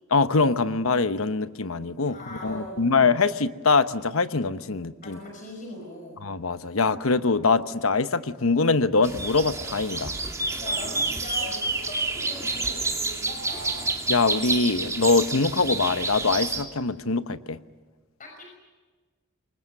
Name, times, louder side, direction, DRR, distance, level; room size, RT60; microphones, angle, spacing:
voice 1, 0.1-3.9 4.1-5.2 6.2-10.1 14.1-17.6, left 4 dB, 80° left, 11 dB, 1.0 m, -23 dB
voice 2, 2.1-3.0 5.0-6.2 10.6-13.8 18.2-18.4, left 1 dB, 40° left, 1 dB, 5.8 m, -40 dB
sound 1, 9.0-16.6, right 3 dB, 15° right, 2.4 m, -29 dB
28.0 x 23.5 x 6.7 m, 1.3 s
head